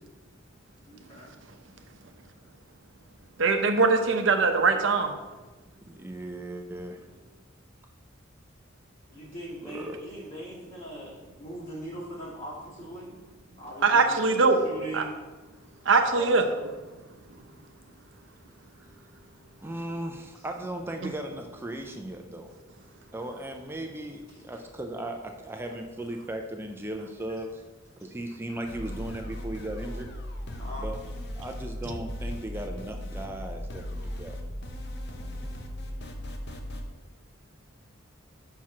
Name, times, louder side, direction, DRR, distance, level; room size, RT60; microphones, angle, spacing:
voice 1, 0.9-1.3 9.1-13.1 13.6-15.2 16.1-16.6 20.4-20.5 24.3-24.4 30.6-30.9, right 1 dB, 40° left, -8 dB, 2.5 m, -41 dB
voice 2, 3.4-5.1 13.8-14.6 14.9-15.0 15.9-16.4, right 4 dB, 70° right, 5 dB, 0.7 m, -21 dB
voice 3, 6.0-7.0 9.6-10.0 19.6-22.5 23.1-27.6 28.0-30.1 30.8-31.0 31.4-34.4, right 1 dB, 10° right, 4 dB, 0.5 m, -37 dB
sound 1, 28.6-36.8, equal, 55° left, 0.8 m, -37 dB
5.7 x 4.6 x 5.9 m, 1.2 s
head